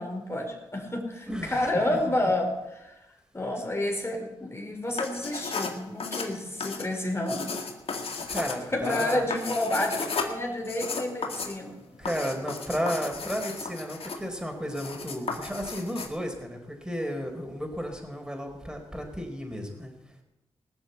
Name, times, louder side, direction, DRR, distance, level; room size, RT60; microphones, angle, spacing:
voice 1, 0.0-2.9 3.3-7.5 8.7-11.7, left 1 dB, 25° left, 2 dB, 4.7 m, -30 dB
voice 2, 1.3-2.1 8.3-9.3 12.0-19.9, equal, 5° right, 3 dB, 4.6 m, -33 dB
sound 1, 4.9-16.1, left 4 dB, 60° left, 2.0 m, -35 dB
18.5 x 7.2 x 8.2 m, 0.95 s
supercardioid pair, 45°, 11 cm